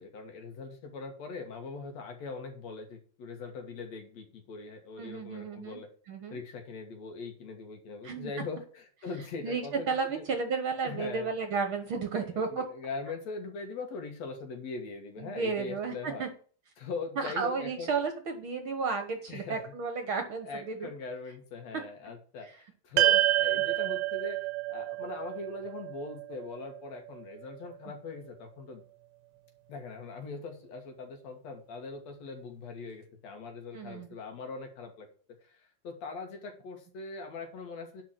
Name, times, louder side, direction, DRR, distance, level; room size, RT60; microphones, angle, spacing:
voice 1, 0.0-5.9 6.3-10.3 10.8-11.3 12.1-16.3 16.8-17.9 19.3-19.7 20.4-22.5 22.8-28.8 29.7-38.0, left 4 dB, 65° left, 4 dB, 2.8 m, -41 dB
voice 2, 5.0-5.8 6.1-6.4 8.0-8.3 9.4-12.6 15.2-16.3 17.2-20.9 22.4-22.5 33.7-34.1, right 5 dB, 55° right, 6 dB, 1.7 m, -33 dB
sound 1, 23.0-27.4, right 16 dB, 85° right, 2.3 m, -29 dB
10.5 x 4.5 x 7.5 m, 0.42 s
omnidirectional pair, 3.3 m